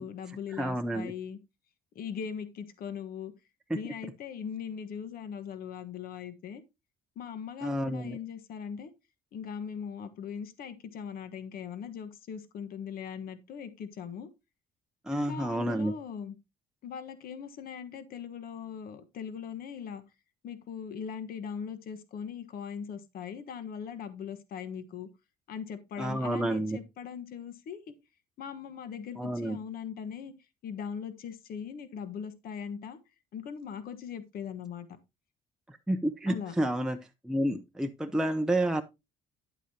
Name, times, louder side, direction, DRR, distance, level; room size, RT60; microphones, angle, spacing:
voice 1, 0.0-1.4 1.9-3.3 3.7-6.6 7.1-8.9 9.3-14.3 15.1-16.3 16.8-20.0 20.4-25.1 25.5-27.8 28.4-30.3 30.6-33.0 33.3-34.9 36.3-36.5, left 7 dB, 60° left, 1.3 m, -40 dB
voice 2, 0.5-1.1 3.7-3.8 7.6-8.2 15.1-15.9 26.0-26.8 29.2-29.6 35.7-37.0 37.2-38.8, right 1 dB, 5° right, 0.6 m, -30 dB
10.0 x 8.2 x 2.8 m
cardioid pair, 110°, 17 cm